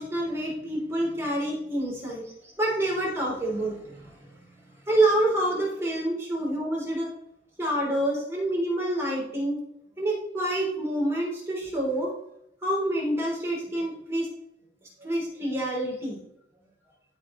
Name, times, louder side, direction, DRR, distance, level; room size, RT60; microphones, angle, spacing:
voice 1, 0.0-4.4 4.9-7.1 7.6-9.6 10.0-12.1 12.6-14.3 15.0-16.2, right 1 dB, 15° right, -4 dB, 3.8 m, -27 dB
15.5 x 6.0 x 3.2 m, 0.81 s
head